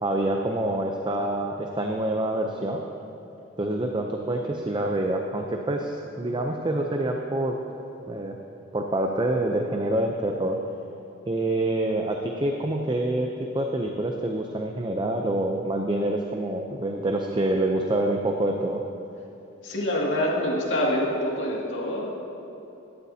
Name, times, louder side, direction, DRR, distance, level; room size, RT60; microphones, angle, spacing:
voice 1, 0.0-2.8 3.6-7.6 8.1-8.4 8.7-10.6 11.3-13.3 13.5-18.8, right 1 dB, 25° right, 2 dB, 0.6 m, -26 dB
voice 2, 19.6-22.1, left 1 dB, 70° left, -3 dB, 2.2 m, -26 dB
16.5 x 12.5 x 2.8 m, 2.9 s
head